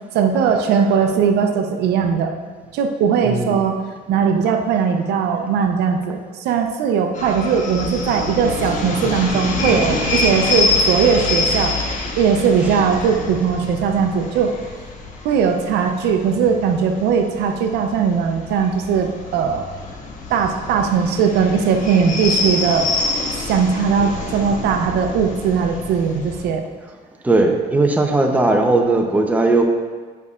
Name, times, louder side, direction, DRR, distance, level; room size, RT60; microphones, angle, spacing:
voice 1, 0.1-2.3 2.7-3.8 4.1-11.7 12.2-14.5 15.2-19.6 20.3-22.9 23.5-26.6, right 6 dB, 80° right, 5 dB, 0.6 m, -19 dB
voice 2, 3.2-3.6 9.0-10.3 12.6-12.8 24.0-24.3 27.2-29.6, right 2 dB, 10° right, 2 dB, 0.7 m, -19 dB
sound 1, 7.1-26.4, left 3 dB, 50° left, 1.1 m, -26 dB
10.5 x 5.4 x 2.5 m, 1.4 s
cardioid pair, 110°, 17 cm